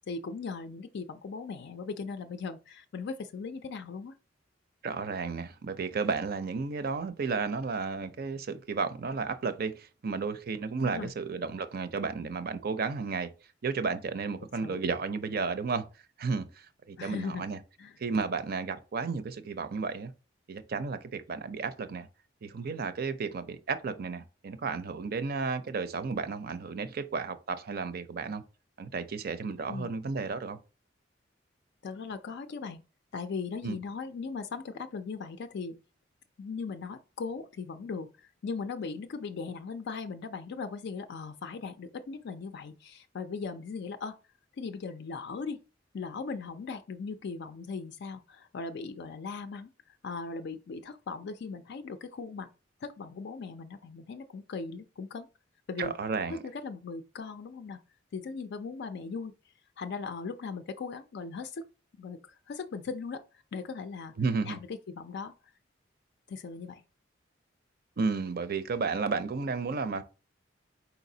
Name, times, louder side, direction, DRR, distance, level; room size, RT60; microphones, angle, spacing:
voice 1, 0.1-4.1 10.8-11.1 14.6-14.8 17.0-17.4 17.8-18.0 29.7-29.9 31.8-32.8 33.1-35.8 36.4-44.2 44.6-45.6 45.9-49.7 50.0-52.5 52.8-55.3 55.7-55.9 56.3-57.8 58.1-59.3 59.8-61.7 62.0-63.2 63.5-64.1 64.5-65.3 66.3-66.8, left 4 dB, 60° left, 0.4 m, -38 dB
voice 2, 4.8-13.3 13.6-15.9 16.2-17.6 18.0-20.1 20.5-22.1 22.4-28.4 28.8-30.6 33.6-33.8 55.8-56.4 64.2-64.6 68.0-70.0, right 4 dB, 55° right, 0.5 m, -33 dB
4.6 x 4.0 x 2.7 m
head